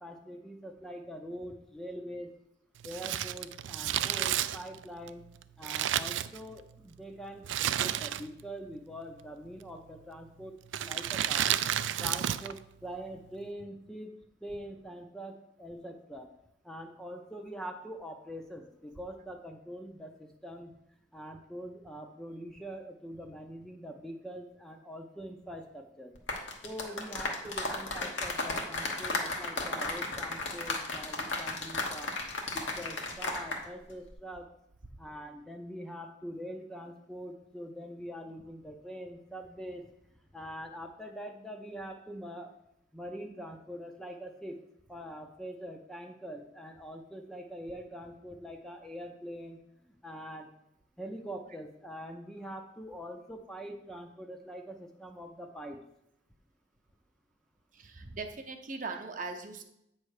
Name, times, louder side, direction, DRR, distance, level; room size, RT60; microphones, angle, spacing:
voice 1, 0.0-2.3 2.8-5.2 5.6-10.5 10.8-11.5 12.0-16.3 16.6-20.7 21.1-26.1 26.6-32.1 32.5-34.5 35.0-39.9 40.3-42.5 42.9-44.6 44.9-49.6 50.0-50.5 51.0-55.8, equal, 5° left, 3 dB, 0.5 m, -43 dB
Crumpling crinkling, 2.8-6.8 7.4-8.5 8.7-8.8 9.7-10.0 10.7-12.6 12.8-12.9, right 11 dB, 80° right, 0.3 m, -31 dB
sound 1, 26.2-33.6 33.9-34.1, left 2 dB, 85° left, 1.2 m, -34 dB
voice 2, 57.8-59.6, right 3 dB, 45° right, 4 dB, 0.7 m, -39 dB
8.7 x 3.2 x 6.4 m, 0.79 s
head